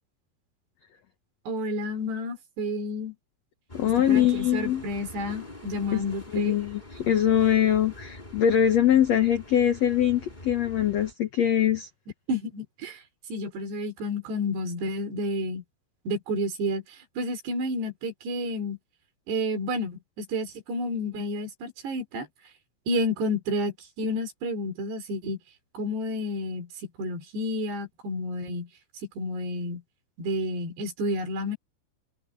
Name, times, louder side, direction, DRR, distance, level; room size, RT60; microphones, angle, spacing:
voice 1, 1.5-3.1 4.1-6.6 12.3-13.0 13.3-15.6 16.1-16.8 17.2-18.8 19.3-22.3 22.9-25.4 25.7-26.7 27.0-28.7 29.2-29.8 30.2-31.6, left 1 dB, 80° right, 6.4 m, -30 dB
voice 2, 3.7-4.9 5.9-6.0 6.3-11.9, left 10 dB, 85° left, 1.4 m, -23 dB
sound 1, 3.7-11.1, left 1 dB, 10° left, 4.3 m, -44 dB
omnidirectional pair, 4.8 m